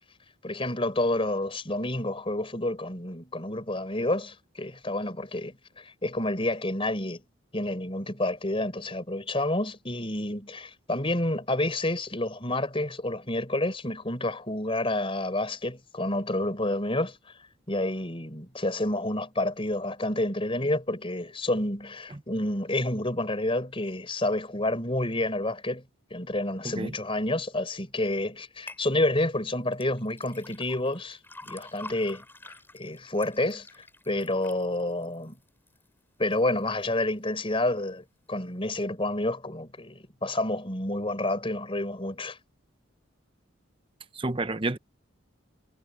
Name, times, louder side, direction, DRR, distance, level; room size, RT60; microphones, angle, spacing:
voice 1, 0.4-7.2 7.5-17.2 17.7-25.8 26.1-31.2 31.5-35.4 36.2-42.4, left 1 dB, 25° left, 4.2 m, -29 dB
sound 1, 28.7-28.8 29.7-35.9 36.3-36.8 37.3-37.4, left 2 dB, 10° left, 5.0 m, -47 dB
voice 2, 44.1-44.8, right 2 dB, 25° right, 0.9 m, -30 dB
head